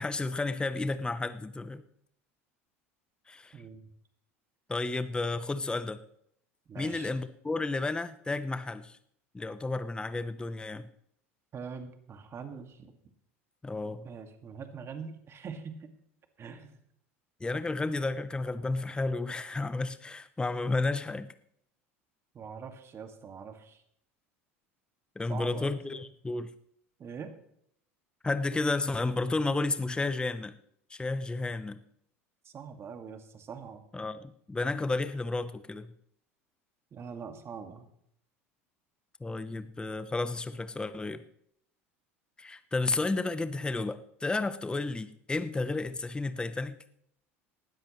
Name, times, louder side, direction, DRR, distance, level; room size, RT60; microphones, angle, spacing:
voice 1, 0.0-1.8 3.3-3.5 4.7-6.0 6.8-9.0 9.3-10.9 13.6-14.0 17.4-21.3 25.2-26.5 28.2-30.5 30.9-31.8 33.9-35.9 39.2-41.2 42.4-46.8, left 3 dB, 10° left, 12 dB, 0.8 m, -32 dB
voice 2, 3.5-3.9 6.7-7.1 11.5-12.9 14.0-15.9 16.4-16.8 22.3-23.8 25.3-26.0 27.0-27.3 32.4-33.8 36.9-37.9, right 6 dB, 35° right, 6 dB, 1.9 m, -43 dB
19.0 x 13.0 x 3.1 m, 0.71 s
hypercardioid pair, 80°, 7 cm